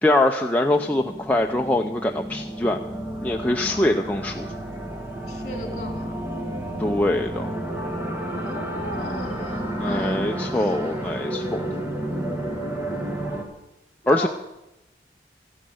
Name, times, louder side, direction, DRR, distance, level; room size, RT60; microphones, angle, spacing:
voice 1, 0.0-2.8 3.2-4.5 6.8-7.5 9.8-11.6 14.1-14.3, left 1 dB, 10° left, 2 dB, 0.6 m, -23 dB
sound 1, 0.7-13.4, right 1 dB, 10° right, 1.8 m, -31 dB
voice 2, 3.5-3.8 5.2-6.3 8.2-11.1 12.9-13.5 14.0-14.3, left 1 dB, 40° left, 5 dB, 2.8 m, -37 dB
14.5 x 10.5 x 7.7 m, 0.95 s
head